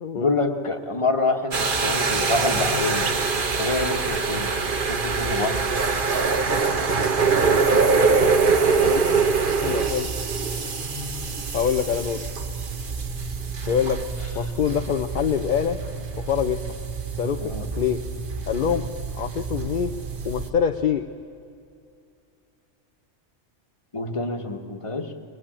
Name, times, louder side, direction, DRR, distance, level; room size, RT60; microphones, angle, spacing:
voice 1, 0.1-3.1 3.6-4.5 4.8-5.6 17.4-17.7 23.9-25.1, left 3 dB, 25° left, 4 dB, 1.4 m, -26 dB
sound 1, 1.5-20.5, right 4 dB, 45° right, 1.2 m, -24 dB
voice 2, 9.6-10.1 11.5-12.2 13.7-14.1 14.3-15.8 16.2-16.7 17.2-18.0 18.5-18.9 19.2-20.0 20.2-21.1, left 8 dB, 50° left, 7 dB, 0.7 m, -25 dB
22.5 x 21.0 x 8.8 m, 2.5 s
omnidirectional pair, 1.2 m